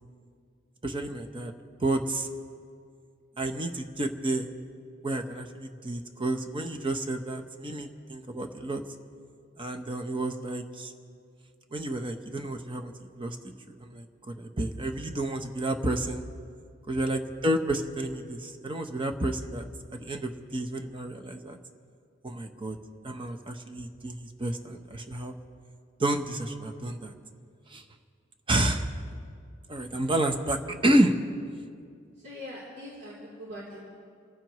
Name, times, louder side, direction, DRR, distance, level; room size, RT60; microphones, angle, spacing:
voice 1, 0.8-1.5 1.8-2.3 3.4-4.5 5.0-8.8 9.6-10.9 11.7-12.9 13.2-13.4 13.7-16.2 16.9-19.7 19.9-21.6 22.2-22.8 23.0-25.3 26.0-27.1 27.7-27.8 28.5-28.9 29.7-31.1, right 1 dB, 25° right, 5 dB, 0.9 m, -30 dB
voice 2, 32.1-33.8, left 1 dB, 55° right, -7 dB, 3.4 m, -42 dB
27.5 x 15.5 x 3.1 m, 2.2 s
head